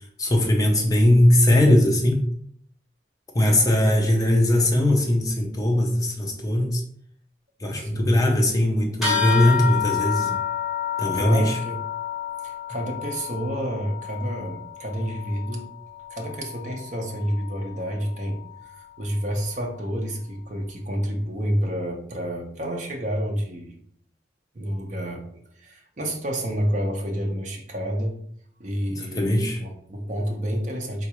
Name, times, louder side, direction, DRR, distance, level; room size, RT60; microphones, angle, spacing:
voice 1, 0.2-2.2 3.3-6.8 7.6-10.4 11.0-11.6 28.9-29.6, left 1 dB, 20° left, 1 dB, 0.5 m, -20 dB
voice 2, 7.8-8.2 11.1-11.8 12.4-15.7 16.1-23.7 24.5-28.2 28.6-31.1, equal, 40° right, 1 dB, 0.6 m, -29 dB
sound 1, 9.0-18.8, left 8 dB, ahead, 1.2 m, -30 dB
3.8 x 2.3 x 2.9 m, 0.64 s
head